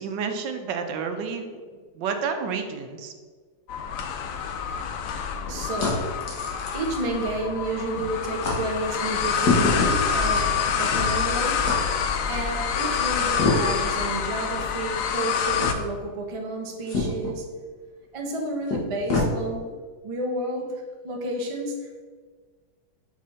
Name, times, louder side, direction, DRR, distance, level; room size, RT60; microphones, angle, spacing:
voice 1, 0.0-1.4 1.9-3.1, right 5 dB, 80° right, 6 dB, 1.4 m, -30 dB
sound 1, 3.7-15.7, left 7 dB, 80° left, 0.7 m, -27 dB
sound 2, 4.2-7.7 8.0-8.1 8.4-8.6 9.3-11.2 11.6-11.8 13.3-13.9 14.5-14.7 15.6-15.8 16.9-17.3 18.3-18.4 18.7-19.3, left 3 dB, 60° left, 1.9 m, -27 dB
voice 2, 4.7-17.6 18.1-19.7 20.0-22.1, right 2 dB, 55° right, 1 dB, 0.3 m, -31 dB
6.2 x 4.6 x 4.1 m, 1.5 s
omnidirectional pair, 2.0 m